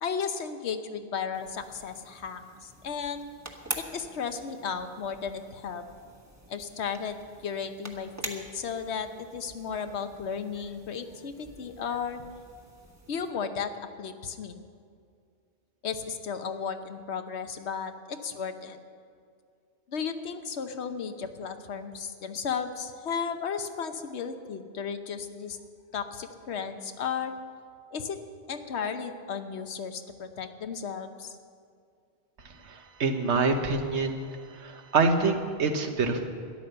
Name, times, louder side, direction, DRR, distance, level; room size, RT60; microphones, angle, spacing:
voice 1, 0.0-3.3 3.8-5.8 6.5-7.2 7.4-12.2 13.1-13.7 14.0-14.6 15.8-18.8 19.9-25.6 25.9-27.3 27.9-28.2 28.5-31.4, left 6 dB, 70° left, 8 dB, 1.1 m, -34 dB
sound 1, 1.3-13.3, right 1 dB, 15° right, 1.2 m, -45 dB
voice 2, 32.6-34.3 34.6-36.3, right 4 dB, 75° right, 6 dB, 1.4 m, -26 dB
13.0 x 11.0 x 6.8 m, 2.3 s
omnidirectional pair, 1.2 m